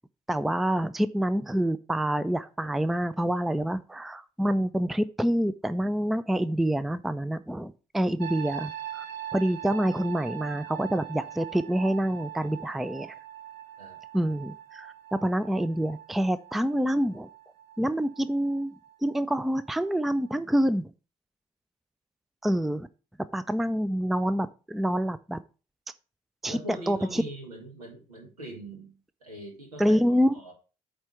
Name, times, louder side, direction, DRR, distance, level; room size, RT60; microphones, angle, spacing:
voice 1, 0.3-9.0 9.3-13.1 14.1-14.9 15.2-17.3 17.8-18.7 19.0-20.9 22.4-22.9 23.3-25.4 26.4-26.6 26.9-27.2 29.8-30.4, equal, ahead, 16 dB, 0.4 m, -27 dB
sound 1, 8.2-19.9 20.2-20.6, right 11 dB, 60° right, 0.9 m, -42 dB
voice 2, 26.5-30.0 30.3-30.5, right 2 dB, 80° right, 1 dB, 1.9 m, -42 dB
8.7 x 3.4 x 5.7 m, 0.34 s
figure-of-eight pair, 45°, 19 cm